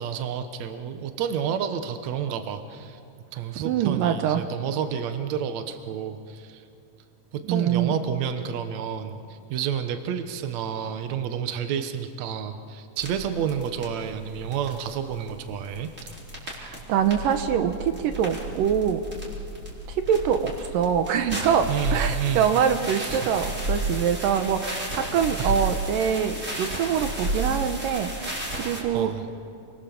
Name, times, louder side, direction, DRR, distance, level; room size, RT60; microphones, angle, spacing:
voice 1, 0.0-3.0 3.3-6.6 7.3-15.9 21.7-22.5 23.0-23.2 25.4-25.5 28.9-29.3, right 8 dB, 60° right, 8 dB, 2.2 m, -30 dB
voice 2, 3.6-4.5 7.5-7.9 16.5-19.0 19.9-29.3, right 8 dB, 80° right, 8 dB, 2.6 m, -24 dB
sound 1, 13.0-28.8, right 1 dB, 20° right, 4.4 m, -33 dB
29.0 x 23.5 x 7.1 m, 2.6 s
omnidirectional pair, 4.0 m